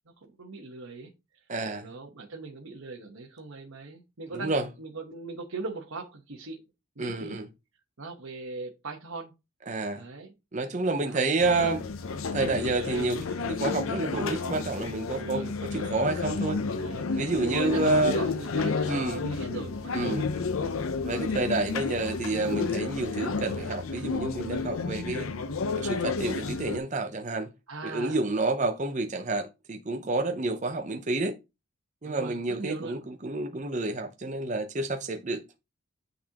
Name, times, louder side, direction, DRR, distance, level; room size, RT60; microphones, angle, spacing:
voice 1, 0.2-1.1 1.6-4.5 4.8-6.6 7.0-7.4 8.0-9.3 9.9-10.3 11.0-11.2 11.5-11.8 12.4-13.5 15.2-15.5 16.7-20.5 27.7-28.2 28.5-28.7 32.0-33.0, right 3 dB, 85° right, 1.2 m, -40 dB
voice 2, 1.5-1.9 4.3-4.7 7.0-7.5 9.7-10.1 10.5-11.8 12.3-16.6 17.2-18.2 18.9-19.2 19.9-20.3 21.0-25.3 25.8-27.5 27.8-31.3 32.0-35.4, right 2 dB, 35° right, 0.6 m, -29 dB
sound 1, 11.4-26.8, left 4 dB, 80° left, 0.6 m, -31 dB
9.1 x 4.1 x 2.9 m
head